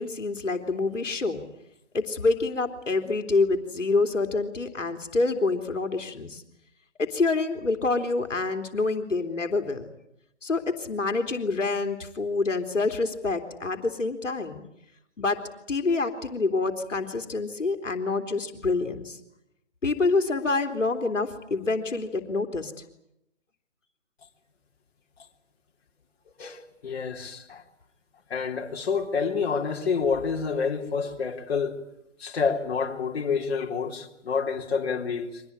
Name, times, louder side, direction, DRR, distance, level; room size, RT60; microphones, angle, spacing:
voice 1, 0.0-1.5 1.9-6.4 7.0-9.9 10.4-14.6 15.2-15.4 15.7-19.2 19.8-22.7, left 3 dB, 85° left, 3.4 m, -27 dB
voice 2, 26.4-27.6 28.3-31.8 32.2-35.4, left 5 dB, 55° left, 3.6 m, -28 dB
24.5 x 19.5 x 9.8 m
figure-of-eight pair, 150°, 36 cm